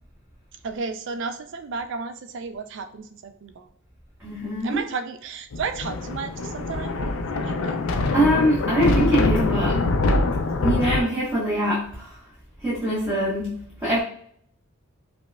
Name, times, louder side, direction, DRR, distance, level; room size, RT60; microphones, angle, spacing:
voice 1, 0.6-3.7 4.6-7.1 7.3-7.8, right 5 dB, 55° right, 8 dB, 0.3 m, -33 dB
voice 2, 4.2-4.8 8.1-9.8 10.6-12.1 12.6-14.0, equal, 10° right, -9 dB, 0.9 m, -23 dB
Thunder, 5.5-11.0, left 2 dB, 70° left, 0.4 m, -24 dB
4.9 x 2.1 x 2.2 m, 0.62 s
head